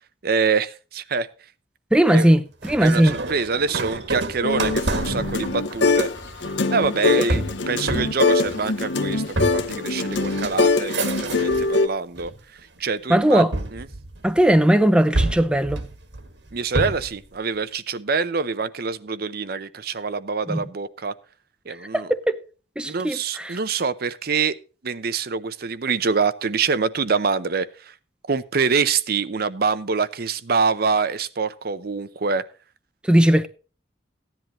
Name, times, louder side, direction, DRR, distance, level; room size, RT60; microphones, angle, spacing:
voice 1, 0.2-1.3 2.1-2.3 2.8-6.1 6.7-12.3 12.8-13.5 13.7-13.9 16.5-21.1 21.7-22.1 22.8-24.5 24.8-27.9 28.3-32.4, right 5 dB, 55° right, 0.7 m, -25 dB
voice 2, 1.9-3.2 7.3-7.4 13.1-13.5 14.2-15.8 20.5-20.6 21.9-22.4 22.8-23.6 33.1-33.5, right 1 dB, 5° right, 0.5 m, -18 dB
sound 1, 2.6-11.8 12.2-12.8 13.5-14.6 15.1-17.2, right 2 dB, 75° right, 1.8 m, -29 dB
sound 2, 4.4-6.2 6.4-11.9, left 3 dB, 80° left, 0.9 m, -23 dB
15.5 x 10.5 x 3.0 m
head